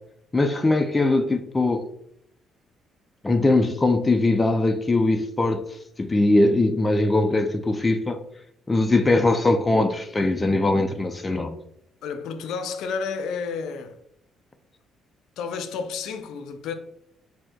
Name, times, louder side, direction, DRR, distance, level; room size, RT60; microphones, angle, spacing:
voice 1, 0.3-1.8 3.2-5.6 6.0-8.2 8.7-11.5, left 2 dB, 20° left, 0.5 m, -21 dB
voice 2, 12.0-13.9 15.4-16.7, left 5 dB, 80° left, 0.5 m, -31 dB
4.3 x 2.8 x 4.5 m
cardioid pair, 85°, 0 cm